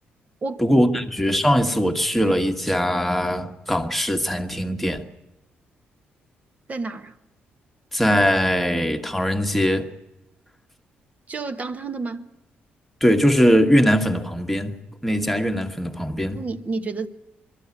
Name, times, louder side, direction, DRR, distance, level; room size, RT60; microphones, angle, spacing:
voice 1, 0.6-5.0 7.9-9.8 13.0-14.7 15.0-16.4, equal, 5° left, 1.4 m, -21 dB
voice 2, 6.7-7.1 11.3-12.3 16.3-17.1, right 3 dB, 40° right, 1.1 m, -30 dB
22.5 x 13.0 x 9.6 m
cardioid pair, 90°, 4 cm